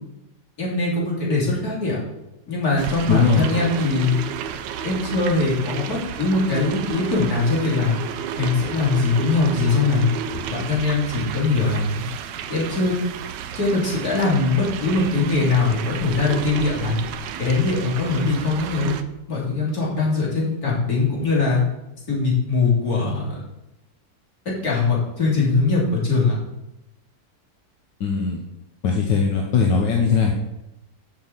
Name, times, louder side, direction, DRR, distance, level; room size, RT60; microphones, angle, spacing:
voice 1, 0.6-2.0 2.5-4.2 4.8-8.0 8.4-10.1 10.5-12.1 12.5-13.0 13.6-17.0 17.4-19.0 19.3-21.6 22.1-23.4 24.6-26.4, left 3 dB, 55° left, -5 dB, 3.5 m, -21 dB
sound 1, 2.8-19.0, right 8 dB, 80° right, 1.3 m, -32 dB
voice 2, 3.1-3.4 28.0-28.4 28.8-30.3, left 5 dB, 85° left, 0 dB, 1.7 m, -19 dB
7.6 x 6.0 x 7.4 m, 0.91 s
omnidirectional pair, 1.9 m